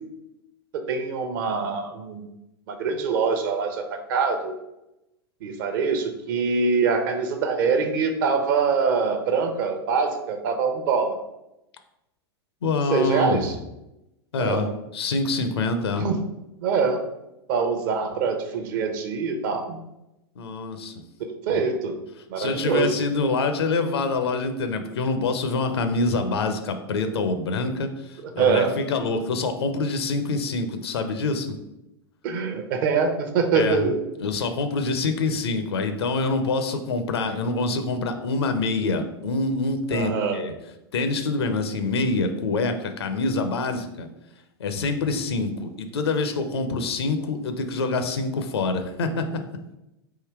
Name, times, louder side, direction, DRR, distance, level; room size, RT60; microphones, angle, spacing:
voice 1, 0.7-2.3 2.7-4.6 5.4-11.2 12.9-13.5 14.4-14.7 16.0-16.2 16.6-17.0 17.5-19.8 21.5-21.9 22.3-23.0 28.4-28.8 32.2-34.0 39.9-40.5, right 5 dB, 50° right, 6 dB, 0.7 m, -24 dB
voice 2, 12.6-13.4 14.3-14.7 14.9-16.1 20.4-20.9 21.5-21.6 22.4-31.6 33.5-33.9 34.2-40.5 40.9-44.1 44.6-49.3, left 3 dB, 70° left, 7 dB, 0.6 m, -26 dB
3.8 x 2.8 x 4.5 m, 0.91 s
figure-of-eight pair, 95°, 14 cm